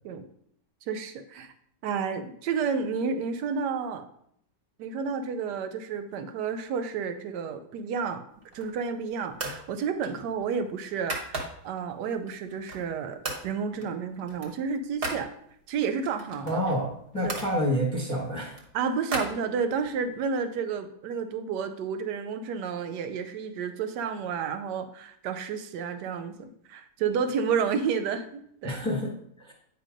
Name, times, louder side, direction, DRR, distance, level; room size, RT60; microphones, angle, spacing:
voice 1, 0.9-1.5 1.8-4.1 4.8-8.2 8.5-15.3 15.7-16.6 17.2-17.3 18.7-28.8, right 6 dB, 85° right, 9 dB, 1.2 m, -31 dB
sound 1, 8.3-8.9 9.3-9.7 10.0-11.8 12.3-12.9 13.2-13.5 13.8-15.2 16.0-17.5 18.1-19.9, right 2 dB, 40° right, 1.0 m, -36 dB
voice 2, 16.4-18.6 28.6-29.1 29.4-29.5, equal, 5° left, -1 dB, 1.0 m, -28 dB
8.6 x 2.9 x 5.0 m, 0.68 s
omnidirectional pair, 1.8 m